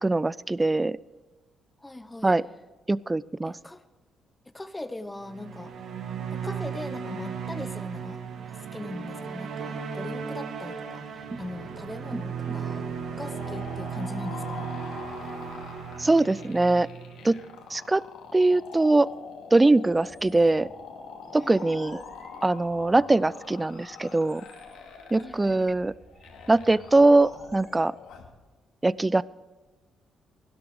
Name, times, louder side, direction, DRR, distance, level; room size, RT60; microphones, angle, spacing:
voice 1, 0.0-1.0 2.2-2.4 2.9-3.6 16.0-16.9 17.2-17.4 17.7-18.0 18.3-19.1 19.5-20.7 21.3-22.0 22.4-24.4 25.1-25.9 26.5-27.9 28.8-29.2, right 2 dB, 15° right, 21 dB, 0.4 m, -22 dB
voice 2, 1.8-2.4 3.4-3.8 4.5-5.7 6.3-8.2 8.5-12.8 13.2-14.7 21.4-21.7 25.2-25.7, left 2 dB, 15° left, 11 dB, 1.0 m, -40 dB
sound 1, 5.2-17.7, right 7 dB, 65° right, 1.5 m, -36 dB
sound 2, 12.4-28.4, left 6 dB, 85° left, 2.3 m, -44 dB
sound 3, 19.8-27.8, right 2 dB, 35° right, 4.2 m, -54 dB
16.0 x 12.0 x 5.0 m, 1.2 s
cardioid pair, 90°, 0 cm